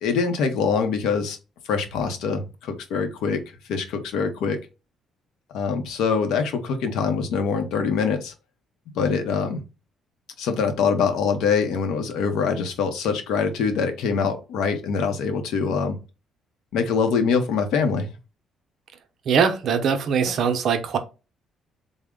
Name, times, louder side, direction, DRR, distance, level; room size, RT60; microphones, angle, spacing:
voice 1, 0.0-1.4 1.6-3.4 3.7-4.6 5.5-8.3 8.9-9.6 10.4-16.0 16.7-18.1, left 5 dB, 85° left, 0.7 m, -24 dB
voice 2, 19.3-21.0, right 6 dB, 55° right, 0.6 m, -21 dB
3.5 x 2.0 x 3.6 m
cardioid pair, 135°, 0 cm